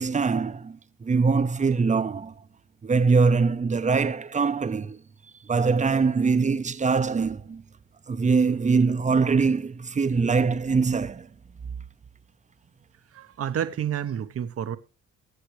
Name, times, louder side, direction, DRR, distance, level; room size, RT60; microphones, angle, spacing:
voice 1, 0.0-2.3 2.8-5.0 5.4-7.6 8.1-11.3, right 4 dB, 25° right, 0.7 m, -23 dB
voice 2, 13.1-14.8, right 9 dB, 50° right, 0.9 m, -29 dB
20.0 x 7.9 x 3.1 m
cardioid pair, 90°, 30 cm